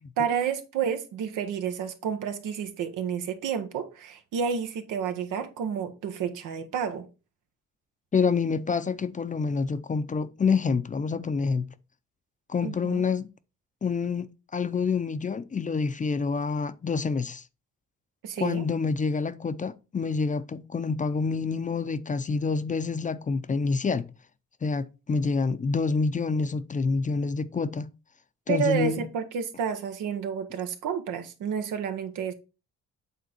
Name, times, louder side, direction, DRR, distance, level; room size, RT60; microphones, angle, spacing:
voice 1, 0.2-7.1 12.6-13.0 18.2-18.7 28.5-32.3, right 7 dB, 90° right, 1.2 m, -30 dB
voice 2, 8.1-11.7 12.5-13.3 13.8-17.4 18.4-24.1 24.6-27.9 28.5-29.0, left 4 dB, 25° left, 0.5 m, -27 dB
8.4 x 3.8 x 4.4 m
cardioid pair, 90°, 30 cm